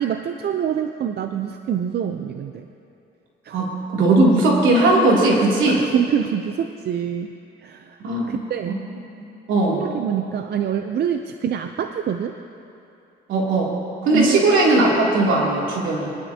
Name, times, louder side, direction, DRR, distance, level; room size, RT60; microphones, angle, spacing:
voice 1, 0.0-2.7 3.4-3.7 5.7-7.3 7.6-8.8 9.7-12.4 14.1-14.5, right 9 dB, 55° right, 7 dB, 0.5 m, -25 dB
voice 2, 3.5-5.8 8.0-8.4 8.6-8.7 9.5-9.8 13.3-13.7 14.0-16.1, right 2 dB, 80° right, -4 dB, 2.8 m, -18 dB
23.0 x 11.0 x 2.8 m, 2.7 s
cardioid pair, 90°, 20 cm